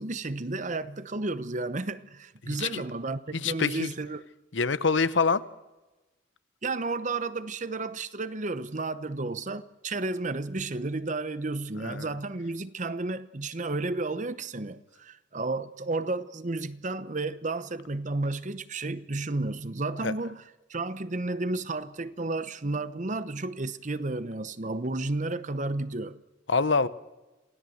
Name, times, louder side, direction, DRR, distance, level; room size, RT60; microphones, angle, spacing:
voice 1, 0.0-4.2 6.6-20.4 20.7-26.2, right 2 dB, 40° right, 0.9 m, -32 dB
voice 2, 2.4-2.8 3.3-3.9 4.5-5.4 11.8-12.1 20.0-20.1 26.5-26.9, left 4 dB, 70° left, 0.9 m, -26 dB
27.5 x 17.0 x 7.9 m
head